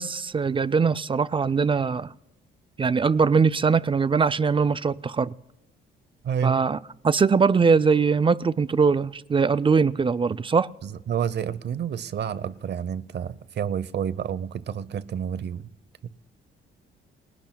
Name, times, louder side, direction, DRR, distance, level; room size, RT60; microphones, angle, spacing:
voice 1, 0.0-2.1 2.8-5.3 6.4-6.8 7.0-10.7, right 5 dB, 25° right, 15 dB, 0.5 m, -21 dB
voice 2, 6.2-6.6 10.8-15.7, right 8 dB, 60° right, 16 dB, 0.8 m, -29 dB
30.0 x 21.0 x 2.3 m, 0.92 s
cardioid pair, 90°, 20 cm